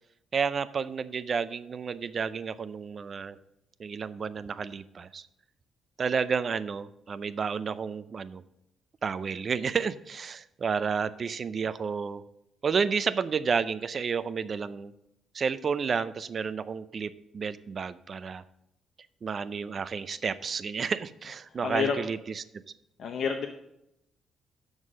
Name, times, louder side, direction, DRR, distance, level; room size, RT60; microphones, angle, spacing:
voice 1, 0.3-3.4 3.8-5.3 6.0-8.4 9.0-12.2 12.6-14.9 15.3-18.4 19.2-22.4, right 6 dB, 45° right, 15 dB, 0.5 m, -31 dB
voice 2, 21.6-22.0 23.0-23.5, left 6 dB, 65° left, 3 dB, 0.8 m, -28 dB
7.3 x 6.3 x 6.3 m, 0.82 s
cardioid pair, 90°, 0 cm